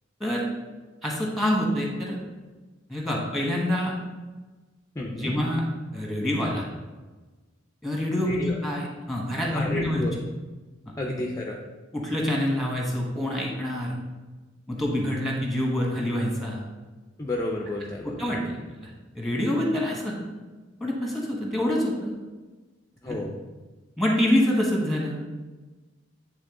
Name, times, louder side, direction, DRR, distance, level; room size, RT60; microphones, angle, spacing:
voice 1, 1.0-2.2 2.9-3.9 5.0-5.6 5.9-6.6 7.8-10.1 11.9-14.0 14.7-16.6 18.0-18.9 19.1-20.1 20.8-22.1 23.1-23.2 24.0-25.2, left 1 dB, ahead, -1 dB, 1.3 m, -26 dB
voice 2, 4.9-5.4 8.2-8.6 9.5-10.1 11.0-11.6 17.2-18.2 23.0-23.4, left 2 dB, 15° left, 0 dB, 0.5 m, -31 dB
8.9 x 3.7 x 3.7 m, 1.3 s
head